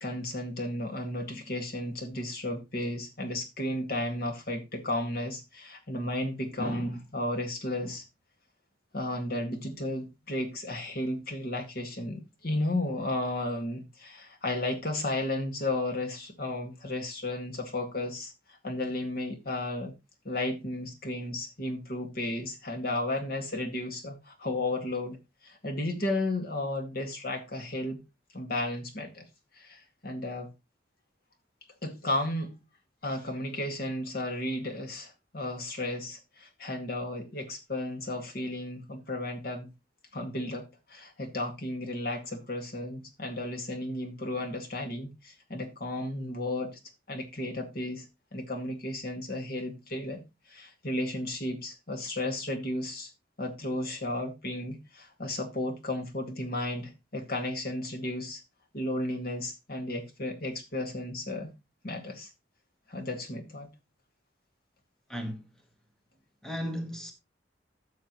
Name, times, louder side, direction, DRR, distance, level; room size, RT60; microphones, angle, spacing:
voice 1, 0.0-8.0 8.9-19.9 20.2-25.2 25.4-28.0 28.3-29.3 29.6-30.5 31.8-32.5 33.0-39.7 40.1-46.8 47.1-48.1 48.3-50.2 50.5-53.1 53.4-58.4 58.7-61.5 61.8-62.3 62.9-63.7, left 1 dB, 55° left, 2.1 m, -33 dB
voice 2, 65.1-65.6 66.4-67.1, equal, 5° left, 1.3 m, -36 dB
13.5 x 6.6 x 3.1 m
head